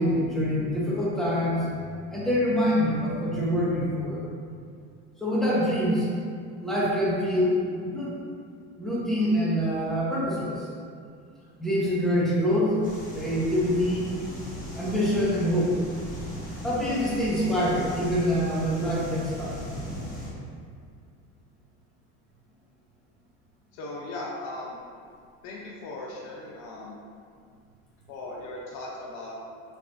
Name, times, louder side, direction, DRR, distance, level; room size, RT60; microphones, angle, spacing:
voice 1, 0.0-4.2 5.2-6.1 6.6-8.1 8.8-10.7 11.6-12.8 13.1-14.1 14.8-15.8 16.6-19.5, equal, ahead, -7 dB, 1.0 m, -25 dB
sound 1, 12.8-20.3, left 1 dB, 25° left, 1.4 m, -38 dB
voice 2, 23.7-24.8 25.4-27.0 28.1-29.4, left 2 dB, 65° left, -3 dB, 0.7 m, -38 dB
5.8 x 3.3 x 2.6 m, 2.2 s
cardioid pair, 135°, 32 cm